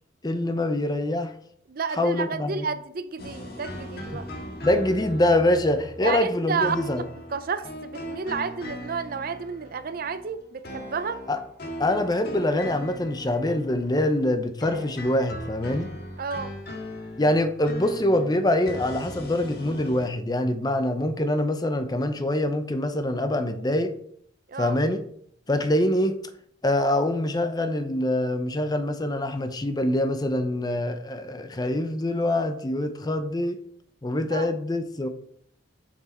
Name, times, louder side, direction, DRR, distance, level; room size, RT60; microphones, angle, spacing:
voice 1, 0.2-1.3 2.0-2.7 4.1-4.2 4.6-7.0 11.3-11.4 11.8-15.9 17.2-24.0 24.6-25.0 25.5-26.2 26.6-33.6 34.0-35.1, left 1 dB, 20° left, 0.6 m, -24 dB
voice 2, 1.7-4.3 6.0-6.8 7.3-11.2 16.2-16.5 24.5-24.8 34.3-34.5, right 5 dB, 50° right, 0.5 m, -31 dB
sound 1, 3.2-14.3 14.6-20.1, equal, 55° left, 1.5 m, -39 dB
6.9 x 6.0 x 4.4 m
head